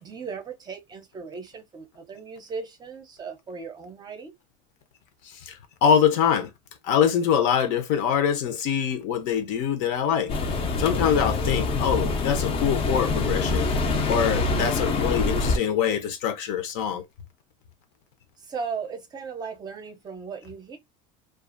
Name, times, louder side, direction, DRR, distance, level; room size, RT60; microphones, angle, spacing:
voice 1, 0.0-4.3 18.4-20.8, right 5 dB, 25° right, 0.6 m, -37 dB
voice 2, 5.4-6.5 6.8-10.3 10.8-13.7 14.1-17.0, left 8 dB, 70° left, 0.7 m, -24 dB
sound 1, 10.3-15.6, left 3 dB, 35° left, 0.5 m, -25 dB
2.4 x 2.4 x 2.5 m
cardioid pair, 140°, 18 cm